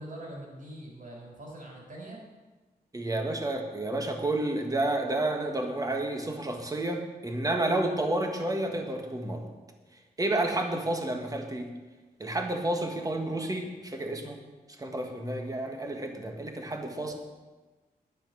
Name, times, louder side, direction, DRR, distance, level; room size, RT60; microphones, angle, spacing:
voice 1, 0.0-2.2, right 1 dB, 55° right, -2 dB, 5.0 m, -43 dB
voice 2, 2.9-9.5 10.2-11.7 12.2-14.4 14.8-17.1, right 1 dB, 20° right, 3 dB, 1.6 m, -30 dB
10.5 x 10.5 x 6.1 m, 1.3 s
wide cardioid pair, 145°, 16 cm